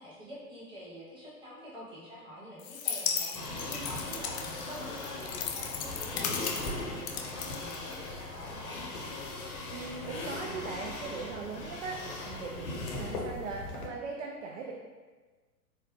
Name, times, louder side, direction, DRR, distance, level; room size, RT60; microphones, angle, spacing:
voice 1, 0.0-8.8, equal, 10° right, -8 dB, 1.2 m, -47 dB
sound 1, 2.6-8.3, left 7 dB, 45° left, 0.4 m, -36 dB
sound 2, 3.3-13.9, left 2 dB, 75° left, 1.0 m, -39 dB
voice 2, 9.7-14.7, right 4 dB, 50° right, 0 dB, 0.5 m, -39 dB
4.6 x 2.2 x 3.1 m, 1.3 s
hypercardioid pair, 115°, 48 cm